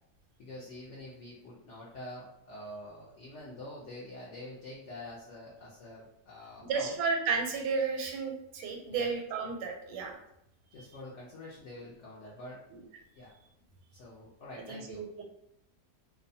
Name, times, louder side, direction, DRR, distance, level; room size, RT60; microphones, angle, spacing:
voice 1, 0.4-7.0 8.9-9.0 10.7-12.6 13.1-13.3 13.9-15.0, left 1 dB, 70° left, -6 dB, 0.6 m, -46 dB
voice 2, 6.6-10.2 14.7-15.2, right 5 dB, 85° right, 2 dB, 1.2 m, -32 dB
2.7 x 2.1 x 2.6 m, 0.78 s
omnidirectional pair, 1.8 m